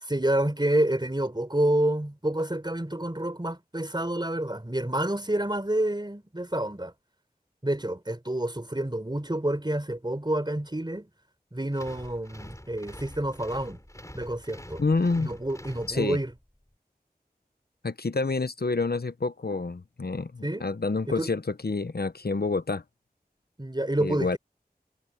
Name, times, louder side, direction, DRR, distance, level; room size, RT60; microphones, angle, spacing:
voice 1, 0.0-6.9 7.6-11.1 11.5-13.8 14.1-14.8 15.2-16.3 20.4-20.6 21.1-21.3 23.6-24.4, right 1 dB, 25° right, 4.2 m, -28 dB
sound 1, 11.7-16.4, left 1 dB, 20° left, 5.3 m, -45 dB
voice 2, 14.8-15.3 15.9-16.2 17.8-22.8 24.0-24.4, left 3 dB, 75° left, 1.0 m, -28 dB
wide cardioid pair, 45°, 16 cm